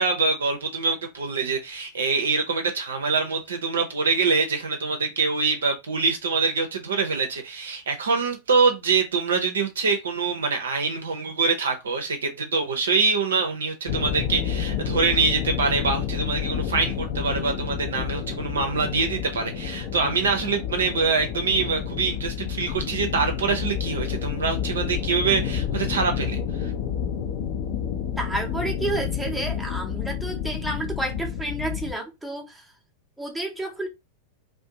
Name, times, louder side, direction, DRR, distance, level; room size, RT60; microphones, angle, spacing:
voice 1, 0.0-26.7, right 4 dB, 65° right, 0.6 m, -25 dB
sound 1, 13.9-31.9, left 8 dB, 50° left, 0.5 m, -29 dB
voice 2, 28.2-32.6 33.2-33.9, right 2 dB, 5° right, 0.7 m, -30 dB
2.5 x 2.2 x 2.8 m
figure-of-eight pair, 90°, 0 cm